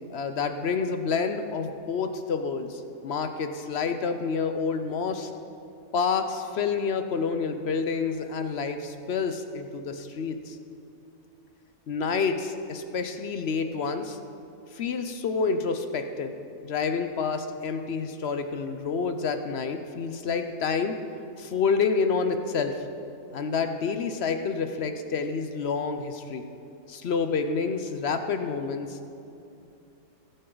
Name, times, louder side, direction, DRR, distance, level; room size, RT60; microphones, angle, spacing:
voice 1, 0.1-5.3 5.9-10.6 11.9-14.2 14.7-16.4 16.6-21.0 21.4-22.8 23.3-26.4 26.9-29.1, left 5 dB, 60° left, 7 dB, 0.8 m, -28 dB
20.0 x 8.0 x 3.9 m, 2.6 s
omnidirectional pair, 1.5 m